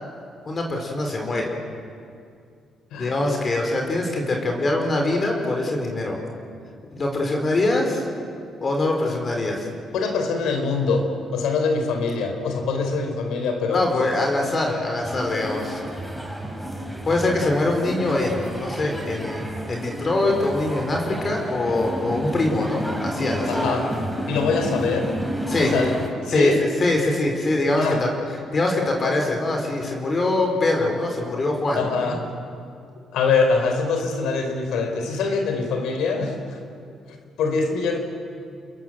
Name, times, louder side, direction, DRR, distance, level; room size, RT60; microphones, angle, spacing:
voice 1, 0.5-1.5 3.0-6.2 6.9-8.0 8.6-9.7 13.7-15.8 17.0-23.6 25.5-25.8 26.3-28.1 28.5-32.1, left 2 dB, 40° left, 2 dB, 4.5 m, -23 dB
voice 2, 9.9-14.1 23.5-24.0 24.3-25.2 25.6-26.6 27.8-28.1 31.7-32.3 33.1-36.6 37.1-38.0, left 4 dB, 85° left, 5 dB, 4.2 m, -24 dB
sound 1, 15.0-26.1, equal, ahead, 4.4 m, -30 dB
29.0 x 22.0 x 7.8 m, 2.4 s
cardioid pair, 90°, 0 cm